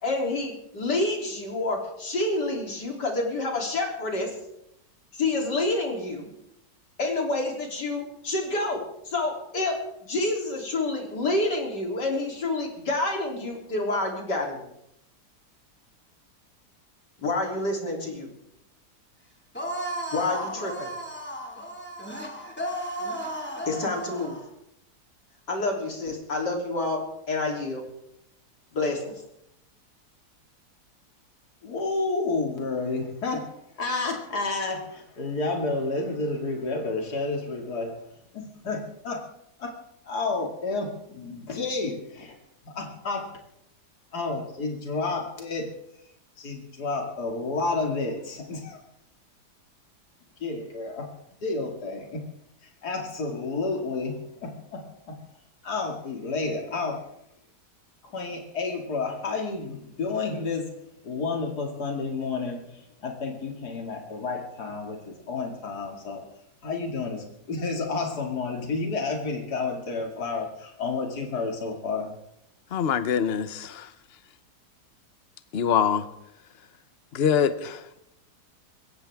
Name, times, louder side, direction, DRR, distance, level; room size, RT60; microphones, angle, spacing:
voice 1, 0.0-4.3 5.2-6.3 7.0-9.8 10.1-14.7 17.2-18.3 20.1-20.9 23.7-24.4 25.5-27.0 27.3-27.8 28.7-29.1, left 2 dB, 85° left, 1 dB, 3.9 m, -28 dB
sound 1, 19.5-24.4, equal, 5° left, 2.4 m, -34 dB
voice 2, 31.6-38.1 38.3-39.3 39.6-39.8 40.1-42.4 42.6-43.3 44.1-45.7 46.4-48.8 50.4-51.1 51.4-52.2 52.6-55.2 55.6-57.0 58.0-60.7 61.0-66.3 66.6-72.1, left 3 dB, 70° left, 2 dB, 2.9 m, -30 dB
voice 3, 72.7-73.9 75.5-76.1 77.1-78.0, left 7 dB, 45° left, 12 dB, 1.0 m, -24 dB
21.5 x 17.5 x 3.6 m, 0.79 s
omnidirectional pair, 1.8 m